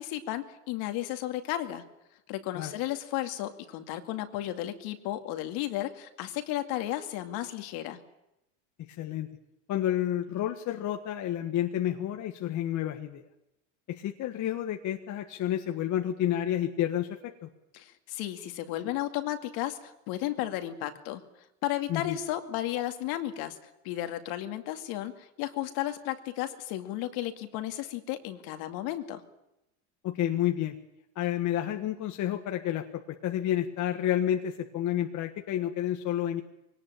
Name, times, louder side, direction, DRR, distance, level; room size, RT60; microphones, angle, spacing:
voice 1, 0.0-1.8 2.3-8.0 17.7-21.2 21.6-23.6 23.8-29.2, left 14 dB, 65° left, 7 dB, 2.4 m, -34 dB
voice 2, 9.0-9.3 9.7-13.2 13.9-17.5 21.9-22.2 30.0-30.8 31.1-36.4, left 11 dB, 50° left, 5 dB, 1.7 m, -30 dB
22.0 x 18.5 x 8.9 m, 0.89 s
supercardioid pair, 105°, 39 cm